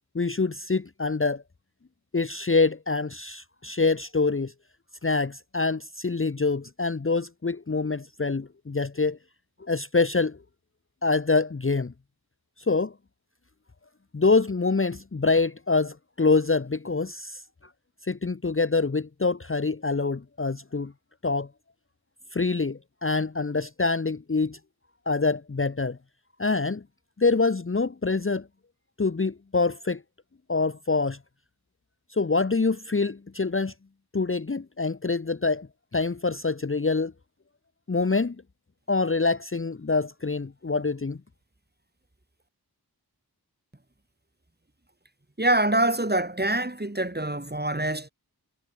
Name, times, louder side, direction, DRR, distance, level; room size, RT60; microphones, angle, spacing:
voice 1, 0.1-1.4 2.1-4.5 5.0-9.2 9.7-10.4 11.0-11.9 12.7-12.9 14.1-17.4 18.1-20.9 21.2-21.5 22.3-24.6 25.1-26.0 26.4-26.8 27.2-28.5 29.0-30.0 30.5-31.2 32.1-33.7 34.1-35.7 35.9-37.1 37.9-38.4 38.9-41.2, left 3 dB, 35° left, 0.8 m, -25 dB
voice 2, 45.4-48.1, right 1 dB, 25° right, 3.2 m, -25 dB
wide cardioid pair, 50°, 39 cm